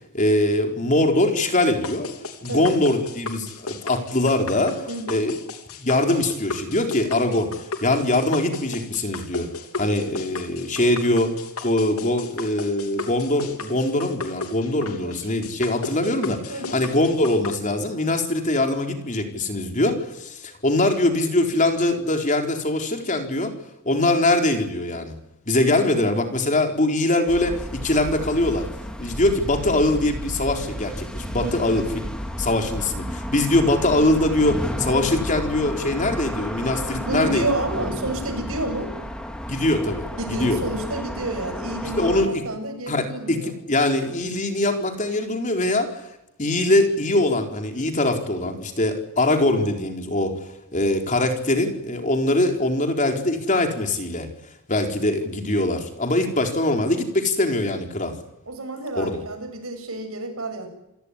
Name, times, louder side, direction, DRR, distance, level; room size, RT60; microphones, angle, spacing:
voice 1, 0.1-2.1 2.4-5.3 5.8-7.5 7.8-9.5 9.8-11.4 11.6-23.5 23.8-25.1 25.5-28.7 29.0-31.9 32.4-37.5 39.5-40.6 42.0-42.4 42.9-46.0 46.4-50.3 50.7-54.3 54.7-58.2 59.0-59.1, left 1 dB, 35° left, 4 dB, 4.2 m, -22 dB
sound 1, 1.8-17.5, left 3 dB, 80° left, 3.3 m, -35 dB
voice 2, 2.4-2.8 4.9-5.3 14.8-15.1 16.5-16.8 25.8-26.1 31.4-31.8 37.0-38.9 40.2-43.5 58.5-60.7, right 1 dB, 70° right, 6 dB, 7.6 m, -30 dB
sound 2, 27.3-42.3, equal, 5° left, 3.0 m, -32 dB
28.5 x 17.5 x 10.0 m, 0.88 s
head